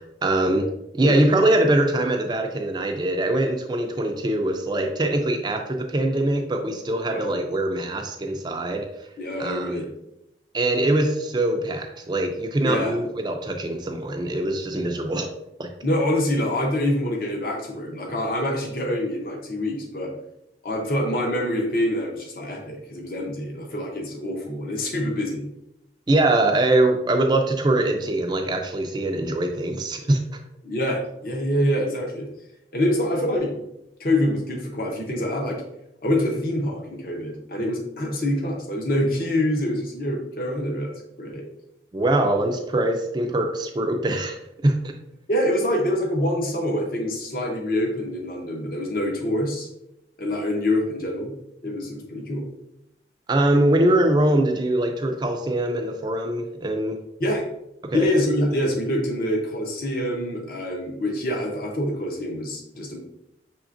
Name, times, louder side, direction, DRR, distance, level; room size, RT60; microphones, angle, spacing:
voice 1, 0.0-8.9 9.4-9.8 10.5-15.3 15.6-15.7 26.1-30.2 41.9-44.4 44.6-44.9 53.3-57.0 57.8-58.1, right 1 dB, 25° right, 3 dB, 0.4 m, -23 dB
voice 2, 9.2-9.8 12.6-13.0 15.8-20.1 20.6-25.5 30.6-32.3 32.7-33.5 34.0-35.6 36.0-40.9 41.2-41.4 45.3-49.7 50.2-51.3 51.6-52.5 57.2-57.4 57.9-63.0, left 1 dB, 50° left, 1 dB, 0.8 m, -25 dB
6.0 x 3.3 x 2.5 m, 0.86 s
head